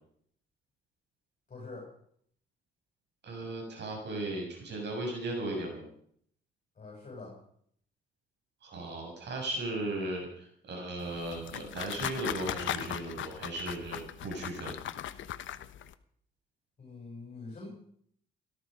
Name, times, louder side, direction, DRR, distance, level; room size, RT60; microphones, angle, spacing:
voice 1, 1.5-1.9 6.8-7.4 16.8-17.7, left 3 dB, 40° left, -2 dB, 7.8 m, -44 dB
voice 2, 3.2-5.9 8.6-14.7, right 2 dB, 60° right, 0 dB, 7.4 m, -36 dB
sound 1, 11.0-15.9, left 11 dB, 75° left, 1.1 m, -38 dB
17.5 x 14.5 x 5.4 m, 0.63 s
cardioid pair, 90°, 20 cm